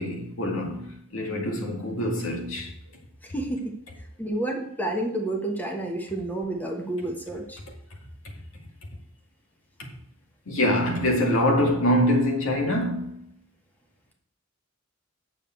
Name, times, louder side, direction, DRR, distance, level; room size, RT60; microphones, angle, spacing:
voice 1, 0.0-2.7 10.5-13.2, left 1 dB, 75° left, 2.1 m, -24 dB
voice 2, 4.2-7.6, right 1 dB, 10° left, 1.2 m, -29 dB
8.5 x 6.8 x 4.5 m
head